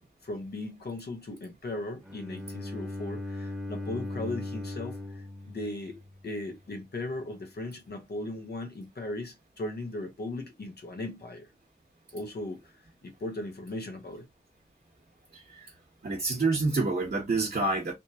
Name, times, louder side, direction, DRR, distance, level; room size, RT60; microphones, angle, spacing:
voice 1, 0.2-11.5 12.1-12.8 13.0-14.3, left 2 dB, 75° left, 1.1 m, -37 dB
Bowed string instrument, 2.0-6.1, left 1 dB, ahead, 1.0 m, -38 dB
voice 2, 16.0-17.9, right 3 dB, 65° right, 1.1 m, -27 dB
3.3 x 3.0 x 2.9 m
wide cardioid pair, 85°, 17 cm